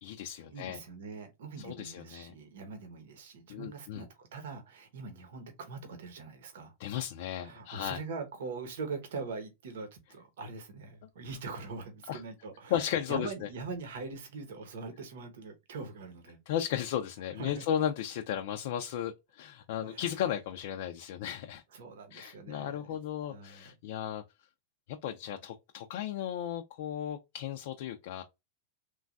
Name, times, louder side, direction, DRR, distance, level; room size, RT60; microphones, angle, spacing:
voice 1, 0.0-0.8 1.6-2.3 3.5-4.0 6.8-8.0 12.1-12.2 12.7-13.5 16.5-21.6 22.1-24.2 24.9-28.2, left 10 dB, 65° left, 0.4 m, -35 dB
voice 2, 0.5-6.7 7.3-16.4 17.3-17.6 19.8-20.1 21.7-22.8 23.3-23.7, right 4 dB, 80° right, 0.9 m, -42 dB
3.1 x 2.2 x 2.4 m
supercardioid pair, 130°, 0 cm